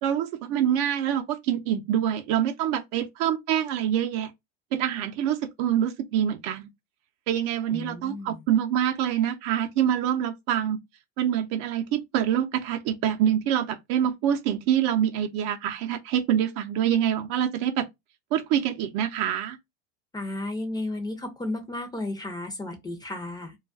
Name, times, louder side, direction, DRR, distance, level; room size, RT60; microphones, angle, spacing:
voice 1, 0.0-4.3 4.7-6.7 7.3-10.8 11.2-17.9 18.3-19.6, right 10 dB, 55° right, 0.5 m, -25 dB
voice 2, 7.7-8.4 20.1-23.6, left 2 dB, 10° left, 0.6 m, -33 dB
2.3 x 2.2 x 2.5 m
hypercardioid pair, 100°, 33 cm